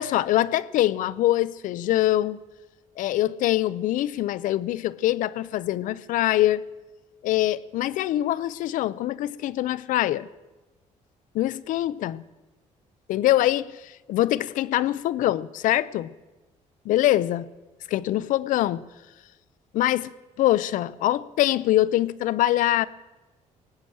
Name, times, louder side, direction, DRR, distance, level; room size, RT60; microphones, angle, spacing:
voice 1, 0.0-2.4 3.0-6.6 7.2-10.3 11.3-12.2 13.1-16.1 16.9-17.4 17.9-18.9 19.7-20.1 20.4-22.9, left 14 dB, 80° left, 0.5 m, -24 dB
18.5 x 8.5 x 7.8 m
cardioid pair, 130°, 13 cm